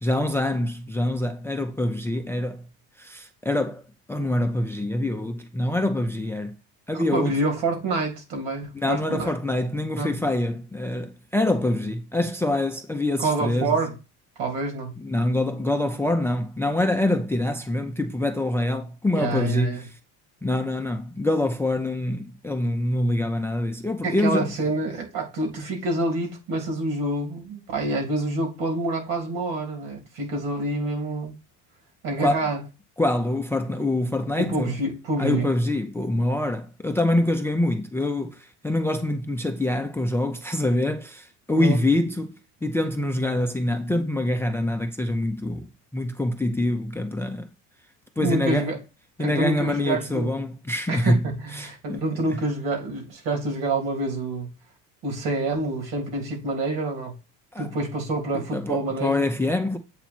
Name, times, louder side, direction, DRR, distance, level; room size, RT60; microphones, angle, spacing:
voice 1, 0.0-2.6 3.0-3.8 4.1-6.5 6.9-7.4 8.7-13.7 15.0-19.8 20.4-24.5 32.2-32.3 33.0-34.7 35.2-42.3 42.6-47.5 48.2-48.7 49.2-51.2 51.6-52.0 57.5-57.7 58.3-59.8, left 1 dB, 5° left, 0.4 m, -25 dB
voice 2, 6.9-9.3 9.9-10.2 13.2-13.9 14.4-14.9 19.1-19.9 24.0-31.3 32.0-32.6 34.4-35.5 41.5-41.8 48.2-48.8 49.2-50.4 50.9-54.5 55.0-57.1 57.6-59.3, right 2 dB, 75° right, 3.1 m, -27 dB
8.2 x 3.0 x 4.3 m
cardioid pair, 125°, 38 cm